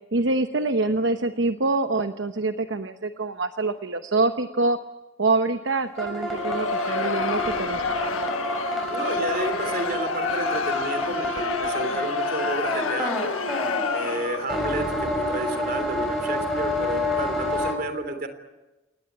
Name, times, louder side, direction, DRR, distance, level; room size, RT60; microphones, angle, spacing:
voice 1, 0.1-4.8 5.2-8.1, right 3 dB, 60° right, 8 dB, 1.0 m, -25 dB
sound 1, 6.0-17.7, left 1 dB, ahead, 6.6 m, -29 dB
Crowd, 6.2-14.7, left 5 dB, 90° left, 1.4 m, -29 dB
voice 2, 8.9-13.3 13.9-18.3, right 2 dB, 45° right, 8 dB, 3.2 m, -31 dB
29.5 x 19.0 x 9.9 m, 1.1 s
head